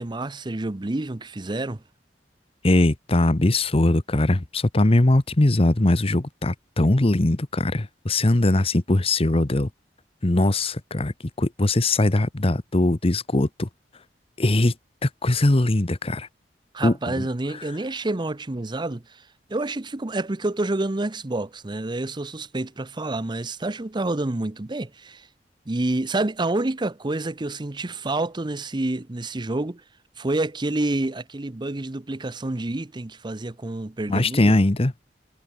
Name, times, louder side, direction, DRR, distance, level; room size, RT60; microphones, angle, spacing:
voice 1, 0.0-1.8 16.7-19.2 19.5-25.3 25.7-29.8 30.2-34.6, right 2 dB, 25° right, 0.7 m, -28 dB
voice 2, 2.6-9.7 10.2-11.1 11.4-13.7 14.4-14.7 15.0-16.3 16.8-17.3 34.1-34.9, left 2 dB, 35° left, 1.0 m, -21 dB
head